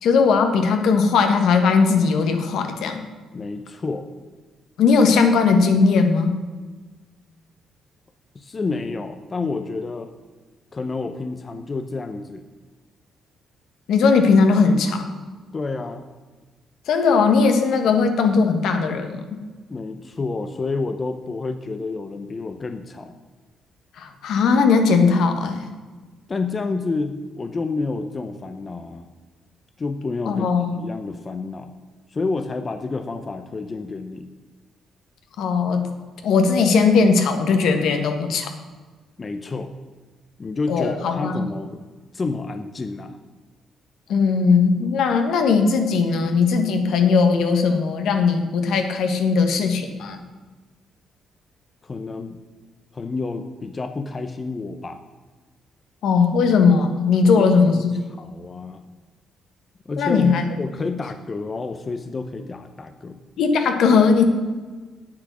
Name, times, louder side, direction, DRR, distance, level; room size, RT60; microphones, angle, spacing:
voice 1, 0.0-3.0 4.8-6.4 13.9-15.1 16.9-19.2 24.0-25.7 30.2-30.8 35.4-35.9 36.2-38.5 40.7-41.4 44.1-50.2 56.0-57.7 60.0-60.4 63.4-64.2, left 5 dB, 75° left, 5 dB, 1.4 m, -18 dB
voice 2, 3.3-4.1 8.3-10.1 10.7-12.5 15.5-16.0 19.7-23.2 26.3-29.1 29.8-31.7 32.1-34.3 39.2-39.7 40.4-41.8 42.1-43.2 51.8-52.4 52.9-55.0 57.2-57.9 58.2-58.8 59.9-60.3 60.6-63.2, left 3 dB, 30° left, 8 dB, 0.7 m, -29 dB
8.6 x 8.3 x 6.2 m, 1.3 s
cardioid pair, 90°, 0 cm